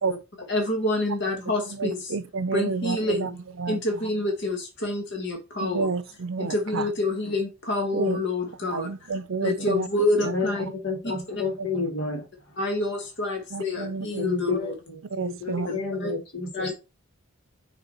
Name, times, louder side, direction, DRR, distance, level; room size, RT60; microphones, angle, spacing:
voice 1, 0.5-2.1 2.5-3.4 3.7-5.9 6.4-9.1 9.4-10.7 12.6-14.7 15.7-16.1 16.5-16.7, left 2 dB, 55° left, 1.3 m, -27 dB
voice 2, 1.7-3.3 3.6-3.8 5.6-6.9 7.9-8.2 8.7-9.9 10.2-10.3 13.5-14.3 15.1-15.7, right 4 dB, 65° right, 0.5 m, -29 dB
voice 3, 10.2-12.6 14.2-16.7, left 4 dB, 90° left, 2.8 m, -31 dB
6.8 x 4.1 x 4.3 m
head